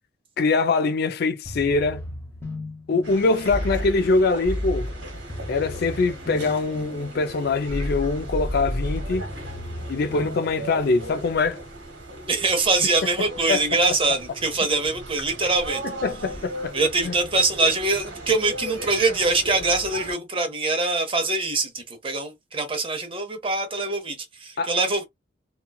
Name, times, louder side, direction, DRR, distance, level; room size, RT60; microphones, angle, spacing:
voice 1, 0.4-2.0 2.9-4.9 5.5-9.3 9.9-11.6 13.5-13.6 16.0-16.7 17.0-17.1 24.6-24.7, left 3 dB, 55° left, 0.4 m, -23 dB
sound 1, 1.5-11.2, left 1 dB, 15° left, 1.0 m, -33 dB
sound 2, 3.0-20.1, right 1 dB, 65° right, 1.2 m, -38 dB
voice 2, 12.3-15.8 16.7-25.0, right 3 dB, 30° right, 0.8 m, -23 dB
2.9 x 2.3 x 2.3 m
head